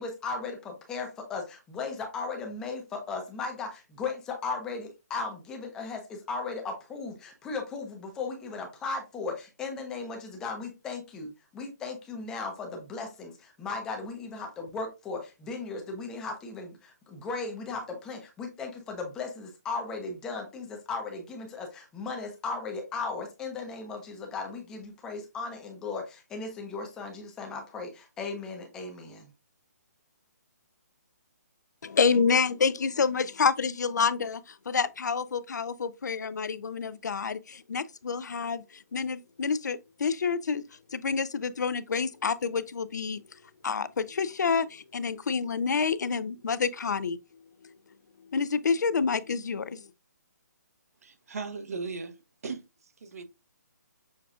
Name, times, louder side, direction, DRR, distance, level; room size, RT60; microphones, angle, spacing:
voice 1, 0.0-29.3, left 4 dB, 5° left, 0.5 m, -36 dB
voice 2, 31.8-40.6 40.9-43.2 43.6-47.2 48.3-49.9, left 5 dB, 80° left, 0.4 m, -28 dB
voice 3, 51.0-52.2 52.4-53.2, right 4 dB, 55° right, 0.8 m, -37 dB
6.4 x 2.3 x 2.4 m
hypercardioid pair, 170°, 9 cm